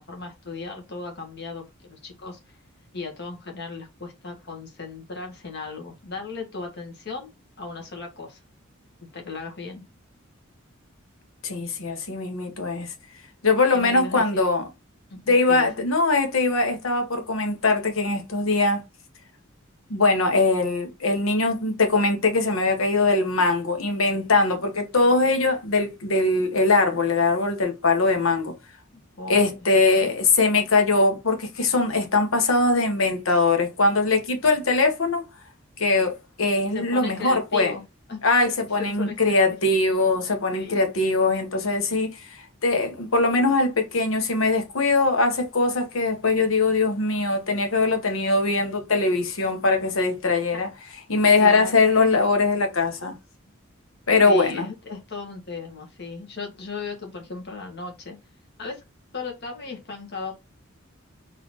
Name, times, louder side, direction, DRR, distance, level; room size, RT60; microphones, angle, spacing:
voice 1, 0.0-2.6 2.9-8.4 9.1-9.8 13.7-14.4 15.1-15.7 28.9-29.7 36.7-37.8 38.1-38.2 38.8-39.4 40.5-40.8 51.4-51.8 54.2-58.2 58.6-58.8 59.1-60.3, left 4 dB, 55° left, 1.5 m, -36 dB
voice 2, 11.4-12.9 13.4-14.6 15.3-18.8 19.9-28.5 29.3-35.2 35.8-37.7 38.2-42.1 42.6-50.7 51.1-53.1 54.1-54.7, left 3 dB, 85° left, 1.2 m, -21 dB
4.1 x 2.8 x 4.1 m
head